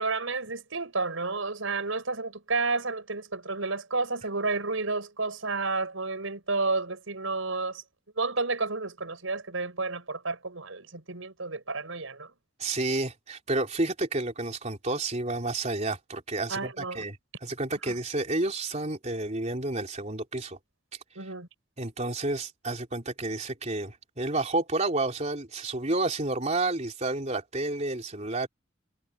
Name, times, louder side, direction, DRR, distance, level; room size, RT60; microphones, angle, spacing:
voice 1, 0.0-7.8 8.2-12.3 16.5-17.0 21.1-21.5, right 3 dB, 85° right, 4.9 m, -31 dB
voice 2, 12.6-17.2 17.4-20.6 21.8-28.5, right 2 dB, 35° right, 3.7 m, -30 dB
head